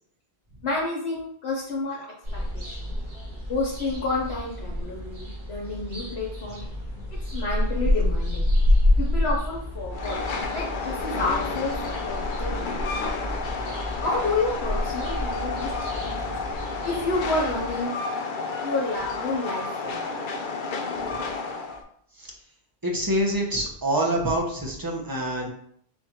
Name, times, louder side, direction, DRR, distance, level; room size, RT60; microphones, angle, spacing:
voice 1, 0.6-2.1 2.3-2.9 3.5-6.6 7.3-8.5 9.0-10.2 10.5-12.8 14.0-16.3 16.8-17.9 18.6-20.2, left 3 dB, 80° left, -5 dB, 1.2 m, -30 dB
sound 1, 2.2-17.7, left 1 dB, 60° right, 2.2 m, -28 dB
Train, 9.9-21.8, left 4 dB, 60° left, 0.7 m, -31 dB
voice 2, 22.8-25.5, right 1 dB, 20° right, -1 dB, 0.8 m, -26 dB
4.4 x 2.5 x 4.2 m, 0.66 s
omnidirectional pair, 1.1 m